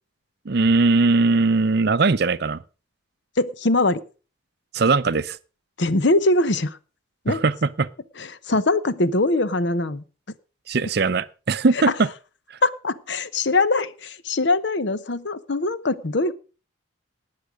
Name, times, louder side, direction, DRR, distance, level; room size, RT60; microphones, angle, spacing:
voice 1, 0.5-2.6 4.7-5.4 7.3-7.9 10.7-12.1, right 3 dB, 50° right, 0.5 m, -20 dB
voice 2, 3.4-4.0 5.8-6.8 7.2-7.4 8.2-10.0 12.6-16.3, left 2 dB, 60° left, 0.8 m, -22 dB
18.5 x 6.6 x 4.9 m
head